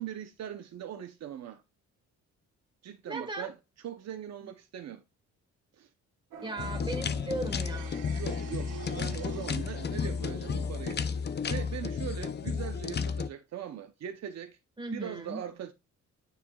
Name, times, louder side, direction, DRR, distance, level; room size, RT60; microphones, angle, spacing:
voice 1, 0.0-1.6 2.8-3.6 3.8-5.0 5.8-5.9 8.1-11.1 11.5-14.6 14.9-15.7, right 10 dB, 60° right, 0.8 m, -40 dB
voice 2, 3.1-3.5 6.4-8.0 14.8-15.4, right 2 dB, 15° right, 1.6 m, -37 dB
sound 1, 6.3-10.8, right 7 dB, 80° right, 1.5 m, -48 dB
sound 2, 6.6-13.3, left 6 dB, 35° left, 0.6 m, -33 dB
9.3 x 4.4 x 2.3 m
cardioid pair, 90°, 30 cm